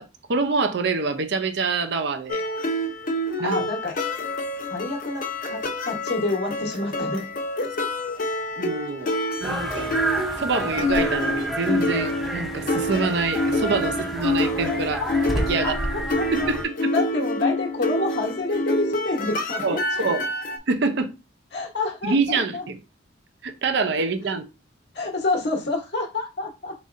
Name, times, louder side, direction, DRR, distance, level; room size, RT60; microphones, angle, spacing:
voice 1, 0.0-2.4 3.4-3.6 8.6-9.9 10.4-15.0 15.5-15.7 16.3-16.9 19.6-20.3 20.7-21.1 22.0-22.8 23.4-24.4, right 4 dB, 60° right, 0.6 m, -26 dB
sound 1, 2.3-20.6, left 1 dB, 45° left, 0.6 m, -27 dB
voice 2, 3.4-3.9 4.7-7.3 7.6-7.9 15.0-15.1 15.6-16.3 16.9-20.1 21.5-22.6 24.3-24.4 24.9-26.7, left 2 dB, 60° left, 1.0 m, -28 dB
sound 2, 9.4-16.6, right 1 dB, ahead, 0.7 m, -29 dB
4.0 x 3.9 x 2.5 m
head